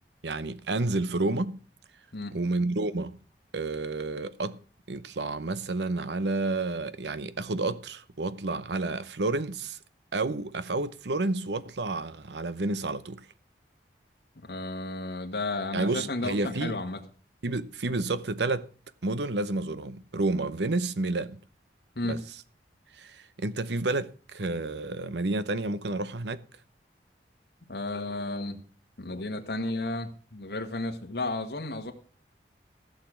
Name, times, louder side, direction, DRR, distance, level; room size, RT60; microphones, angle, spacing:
voice 1, 0.2-1.6 2.3-3.2 3.5-4.6 4.9-9.8 10.1-13.2 15.7-16.8 17.4-18.7 19.0-21.4 22.1-22.2 22.9-26.4, right 2 dB, 75° right, 0.8 m, -30 dB
voice 2, 14.4-17.0 21.9-22.2 27.7-28.6 29.0-31.9, left 2 dB, 65° left, 1.6 m, -33 dB
15.0 x 6.7 x 6.0 m
head